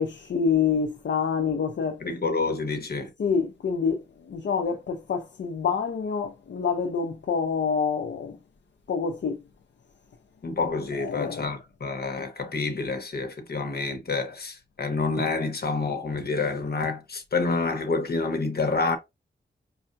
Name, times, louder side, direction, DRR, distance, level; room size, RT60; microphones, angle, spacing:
voice 1, 0.0-2.0 3.2-8.4 8.9-9.4 11.0-11.6, left 6 dB, 70° left, 0.5 m, -27 dB
voice 2, 2.0-3.1 10.4-19.0, left 3 dB, 55° left, 1.0 m, -28 dB
5.5 x 2.2 x 2.5 m
wide cardioid pair, 100°, 19 cm